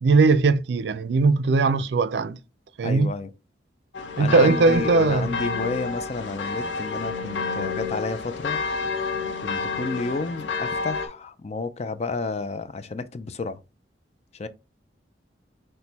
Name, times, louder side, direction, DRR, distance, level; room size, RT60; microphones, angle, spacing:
voice 1, 0.0-2.4 2.8-3.1 4.2-5.3, right 3 dB, 65° right, 0.4 m, -19 dB
voice 2, 2.8-3.3 4.2-8.6 9.4-13.6 14.3-14.5, left 3 dB, 35° left, 0.4 m, -31 dB
sound 1, 3.9-11.1, left 4 dB, 90° left, 0.7 m, -29 dB
6.1 x 2.2 x 4.0 m
head